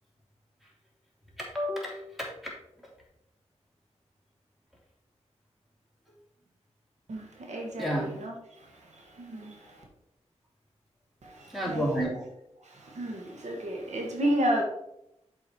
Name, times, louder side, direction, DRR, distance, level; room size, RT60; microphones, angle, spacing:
voice 1, 1.4-2.5 7.8-8.2 11.5-12.1, equal, ahead, -3 dB, 2.9 m, -31 dB
voice 2, 7.1-8.3 9.2-9.6 11.2-11.8 12.7-14.6, right 1 dB, 85° right, 0 dB, 1.7 m, -31 dB
7.4 x 4.9 x 4.5 m, 0.81 s
wide cardioid pair, 75°, 12 cm